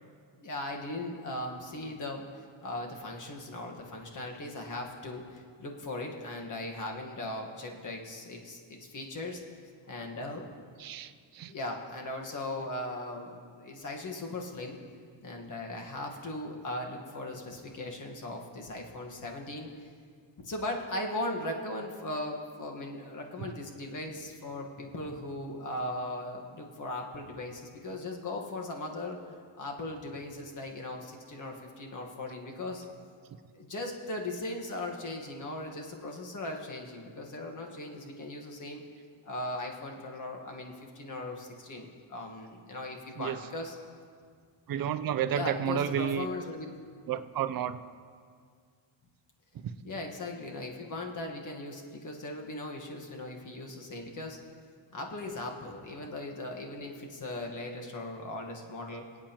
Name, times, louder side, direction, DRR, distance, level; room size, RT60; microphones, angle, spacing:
voice 1, 0.4-9.4 9.9-10.7 11.5-14.8 15.2-19.7 20.4-29.2 29.6-32.8 33.5-38.8 39.2-43.7 45.3-46.7 49.8-54.4 54.9-59.1, left 2 dB, 40° left, 1 dB, 1.5 m, -38 dB
voice 2, 10.8-11.5 43.2-43.4 44.7-46.3 47.1-47.8 49.5-49.7, right 9 dB, 45° right, 11 dB, 0.5 m, -31 dB
22.0 x 8.8 x 3.0 m, 2.1 s
cardioid pair, 125°, 49 cm